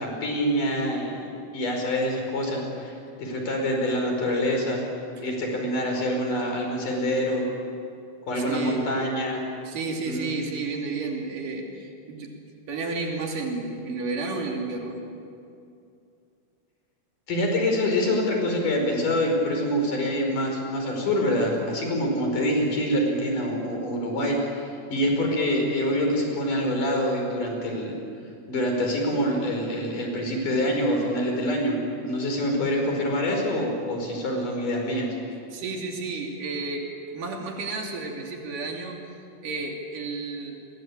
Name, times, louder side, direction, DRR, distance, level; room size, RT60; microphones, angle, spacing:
voice 1, 0.0-2.9 3.2-4.9 5.2-7.4 8.3-9.4 10.0-10.3 17.3-28.0 28.5-31.8 32.0-35.1, equal, 80° left, 2 dB, 6.7 m, -26 dB
voice 2, 8.4-8.9 9.6-12.3 12.7-15.0 35.5-36.8 37.1-39.0 39.4-40.5, right 3 dB, 90° right, 1 dB, 4.4 m, -31 dB
29.0 x 22.0 x 8.8 m, 2.5 s
omnidirectional pair, 3.7 m